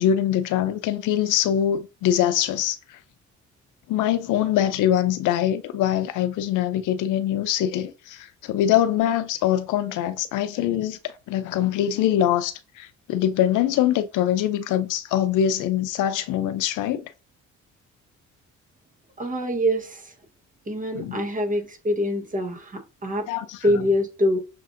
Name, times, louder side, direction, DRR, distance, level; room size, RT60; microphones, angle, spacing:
voice 1, 0.0-3.0 3.9-17.1 20.9-21.2 23.3-23.7, left 11 dB, 85° left, 0.6 m, -23 dB
voice 2, 19.2-20.1 20.7-23.3 23.6-24.4, equal, 25° right, 1.1 m, -25 dB
6.4 x 2.5 x 2.5 m
cardioid pair, 90°, 30 cm